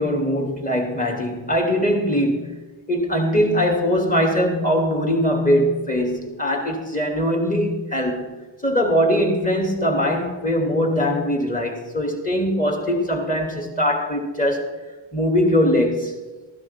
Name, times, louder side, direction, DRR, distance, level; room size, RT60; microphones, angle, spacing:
voice 1, 0.0-2.5 2.9-14.7 15.1-16.2, equal, 15° left, 1 dB, 3.0 m, -21 dB
16.0 x 12.0 x 3.8 m, 1.2 s
cardioid pair, 65°, 46 cm